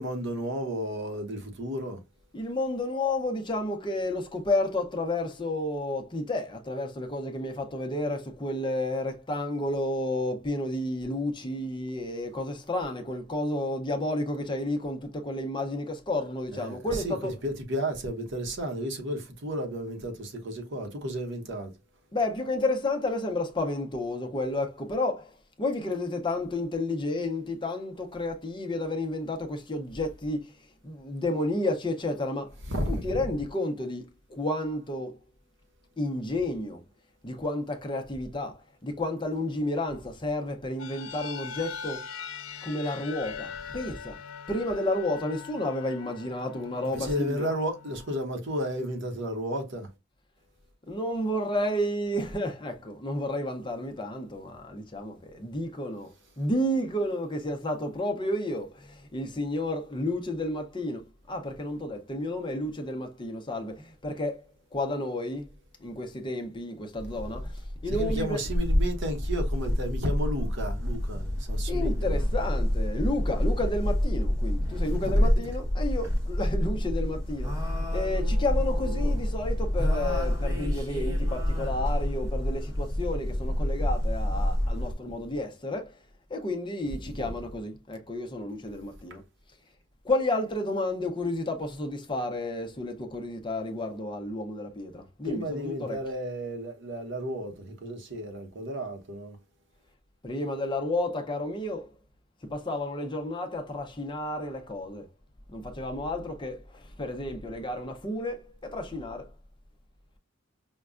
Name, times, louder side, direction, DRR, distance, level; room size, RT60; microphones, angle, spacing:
voice 1, 0.0-2.0 16.5-21.7 32.7-33.2 46.8-49.9 67.9-72.3 74.9-75.3 95.2-99.4, equal, 60° right, 0.9 m, -33 dB
voice 2, 2.3-17.4 22.1-25.2 25.6-30.4 30.8-32.5 32.9-34.0 34.3-35.1 36.0-36.8 37.2-38.5 38.8-42.0 42.6-44.1 44.5-47.5 50.9-56.1 56.4-58.7 59.1-61.0 61.3-63.7 64.0-64.3 64.7-65.4 65.8-67.4 67.8-68.4 71.7-77.5 77.9-85.8 86.3-89.2 90.1-96.0 100.2-101.8 102.5-105.0 105.5-106.6 107.0-108.4 108.7-109.2, left 1 dB, 25° left, 0.6 m, -31 dB
sound 1, 40.8-48.2, left 6 dB, 70° left, 0.4 m, -41 dB
sound 2, 67.0-84.9, left 1 dB, 15° right, 1.0 m, -28 dB
5.3 x 2.2 x 2.4 m
head